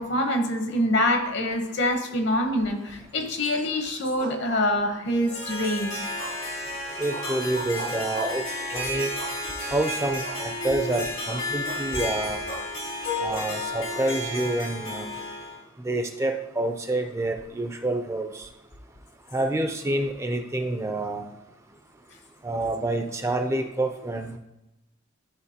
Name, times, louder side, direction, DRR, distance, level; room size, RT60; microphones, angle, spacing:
voice 1, 0.0-6.0, left 1 dB, 60° left, 5 dB, 0.9 m, -25 dB
sound 1, 4.2-5.2 6.2-6.6 7.1-8.5 9.2-9.8 10.2-10.5 10.8-10.9 11.3-11.9 12.5-12.7 13.3-14.0, right 3 dB, 80° right, 1.5 m, -39 dB
Harp, 5.1-15.6, left 1 dB, 80° left, 1.9 m, -32 dB
voice 2, 7.0-8.4 8.7-9.1 9.7-12.5 13.2-15.2 15.8-18.5 19.3-21.3 22.4-24.4, right 2 dB, 15° right, 6 dB, 0.4 m, -28 dB
11.0 x 3.7 x 2.8 m, 0.91 s
head